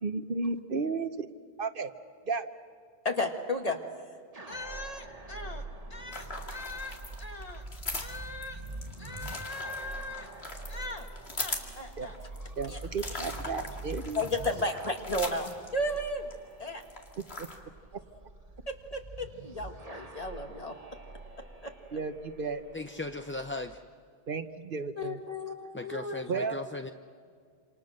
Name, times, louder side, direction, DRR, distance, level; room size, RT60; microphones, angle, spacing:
voice 1, 0.0-1.3 1.6-1.9 2.3-2.5 12.0-12.1 12.6-14.2 17.4-17.5 21.9-22.6 24.3-25.2 26.3-26.6, right 4 dB, 55° right, 10 dB, 1.1 m, -33 dB
voice 2, 3.0-3.8 4.5-5.6 5.9-7.6 8.0-8.6 9.0-10.3 10.7-11.1 11.4-12.1 12.7-12.8 13.1-13.5 14.1-16.3 16.6-16.8 18.7-20.7 21.6-22.0 25.0-26.5, left 1 dB, 35° left, 4 dB, 2.0 m, -35 dB
sound 1, 4.3-23.8, right 2 dB, 35° right, 1.5 m, -45 dB
sound 2, 6.1-16.3 16.7-17.6, left 2 dB, 70° left, 2.6 m, -40 dB
voice 3, 22.7-23.8 25.7-26.9, left 2 dB, 15° left, 6 dB, 0.5 m, -37 dB
27.5 x 27.5 x 6.5 m, 2.2 s
omnidirectional pair, 1.1 m